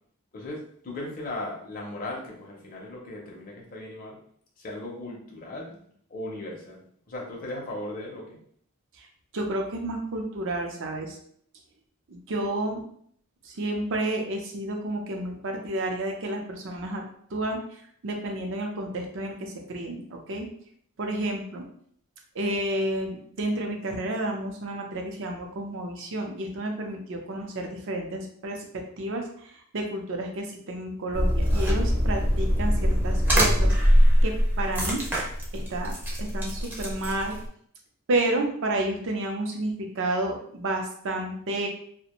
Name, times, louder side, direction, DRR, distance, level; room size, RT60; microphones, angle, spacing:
voice 1, 0.3-4.2 4.6-5.8 6.1-8.4, left 1 dB, 40° left, -2 dB, 0.6 m, -37 dB
voice 2, 9.3-11.2 12.1-12.8 13.4-17.0 17.3-20.5 21.0-21.6 22.3-34.0 34.2-35.0 35.5-35.9 36.2-37.3 38.1-41.7, right 1 dB, 60° right, 2 dB, 0.6 m, -31 dB
sound 1, 31.1-37.5, equal, 10° right, 0.5 m, -23 dB
2.4 x 2.1 x 2.9 m, 0.62 s
head